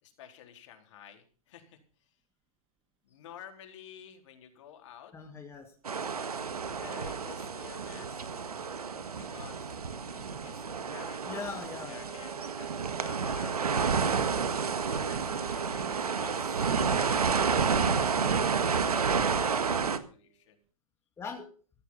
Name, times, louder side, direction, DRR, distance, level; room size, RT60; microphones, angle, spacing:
voice 1, 0.0-2.1 3.0-5.1 6.7-8.4 9.1-9.7 10.4-12.7 13.0-14.4 14.9-18.7 19.3-19.6 19.9-20.6, left 10 dB, 55° left, 4 dB, 4.1 m, -51 dB
voice 2, 5.1-5.7 9.0-9.1 11.3-12.0 19.0-19.4 21.2-21.5, left 5 dB, 15° left, 2 dB, 2.2 m, -41 dB
sound 1, 5.8-20.0, right 5 dB, 90° right, 1.8 m, -30 dB
sound 2, 7.9-20.3, right 15 dB, 30° right, 1.7 m, -49 dB
15.5 x 11.5 x 5.7 m, 0.39 s
hypercardioid pair, 130°, 19 cm